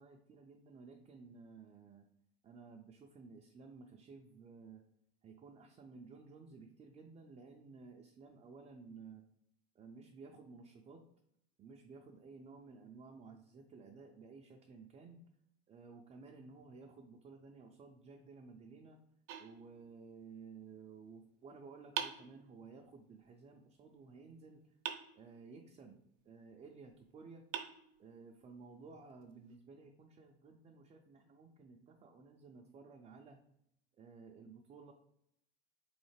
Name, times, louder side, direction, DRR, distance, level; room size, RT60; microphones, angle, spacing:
voice 1, 0.0-2.1 2.4-4.8 5.2-9.2 9.8-11.0 11.6-15.2 15.7-19.0 19.4-24.6 25.1-26.0 26.2-27.5 28.0-33.4 34.0-34.9, right 4 dB, 20° right, 1 dB, 0.3 m, -55 dB
sound 1, 19.3-20.3 22.0-23.0 24.9-25.8 26.9-27.0 27.5-28.5, right 9 dB, 65° right, 0.6 m, -45 dB
3.7 x 3.1 x 3.2 m, 0.76 s
hypercardioid pair, 95°, 32 cm